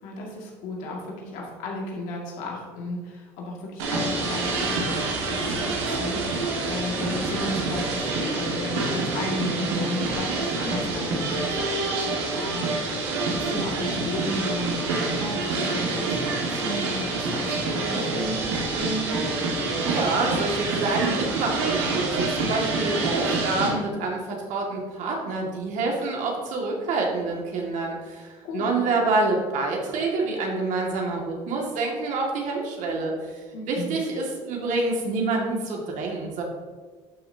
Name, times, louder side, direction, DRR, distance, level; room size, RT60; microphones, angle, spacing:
voice 1, 0.0-19.3 28.4-28.7 33.5-33.9, left 1 dB, 75° left, -1 dB, 2.3 m, -34 dB
sound 1, 3.8-23.7, right 3 dB, 90° right, 1.8 m, -27 dB
voice 2, 19.8-33.4 33.7-36.4, right 3 dB, 65° right, 0 dB, 2.1 m, -27 dB
12.0 x 6.1 x 2.8 m, 1.5 s
supercardioid pair, 80°, 14 cm